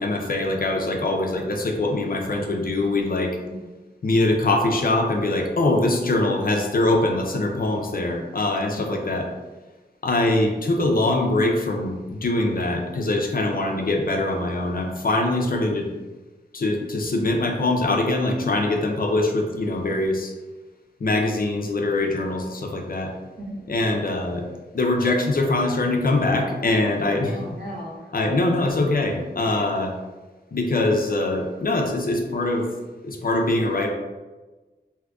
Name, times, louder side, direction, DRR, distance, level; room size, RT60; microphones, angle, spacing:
voice 1, 0.0-3.3 4.0-9.3 10.0-15.9 16.5-20.3 21.0-23.1 23.7-24.5 24.7-27.4 28.1-29.9 30.5-32.7 33.0-33.9, left 2 dB, 55° left, 2 dB, 0.5 m, -23 dB
voice 2, 3.4-3.7 8.7-8.9 23.4-23.7 27.3-28.1, equal, 70° right, -4 dB, 1.0 m, -37 dB
2.7 x 2.5 x 3.4 m, 1.2 s
wide cardioid pair, 85°, 18 cm